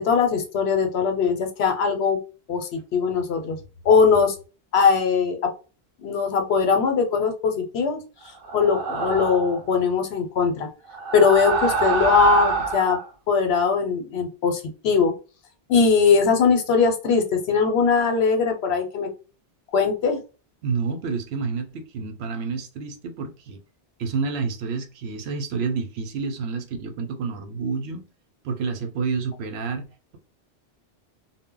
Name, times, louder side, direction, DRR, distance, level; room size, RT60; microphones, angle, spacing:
voice 1, 0.0-2.2 2.5-3.6 3.8-4.3 4.7-5.4 6.0-8.0 8.5-10.7 11.1-13.0 13.3-15.1 15.7-19.1 19.7-20.2, left 5 dB, 80° left, 0.9 m, -20 dB
sound 1, 8.4-9.6 10.9-13.1, right 4 dB, 65° right, 0.8 m, -25 dB
voice 2, 20.6-23.6 24.0-28.1 28.4-29.8, right 5 dB, 90° right, 0.9 m, -29 dB
2.0 x 2.0 x 3.7 m
omnidirectional pair, 1.1 m